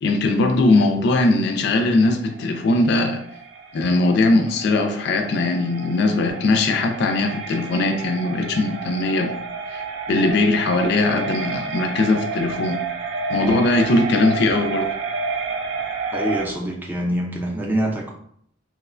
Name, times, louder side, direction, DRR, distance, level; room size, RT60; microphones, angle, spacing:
voice 1, 0.0-3.2 3.7-9.3 9.7-9.8 10.1-12.8 13.3-14.9, left 2 dB, 60° left, 5 dB, 0.3 m, -20 dB
sound 1, 1.8-16.5, right 4 dB, 80° right, 0.4 m, -30 dB
voice 2, 16.1-18.1, equal, 10° right, -2 dB, 0.4 m, -25 dB
3.0 x 2.1 x 2.4 m, 0.67 s
head